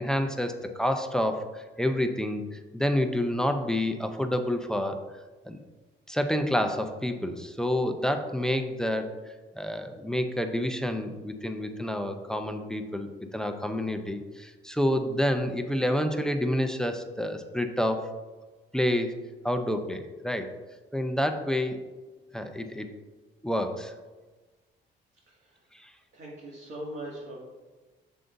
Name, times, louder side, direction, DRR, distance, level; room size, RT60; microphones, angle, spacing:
voice 1, 0.0-5.0 5.4-5.6 6.1-9.2 9.6-18.1 18.7-19.1 19.4-20.5 20.9-21.8 22.3-22.9 23.4-23.9 25.7-25.9, left 1 dB, 5° left, 6 dB, 0.6 m, -28 dB
voice 2, 25.3-25.6 26.1-27.4, right 1 dB, 60° right, -6 dB, 2.1 m, -40 dB
7.5 x 6.8 x 2.6 m, 1.2 s
cardioid pair, 90°, 20 cm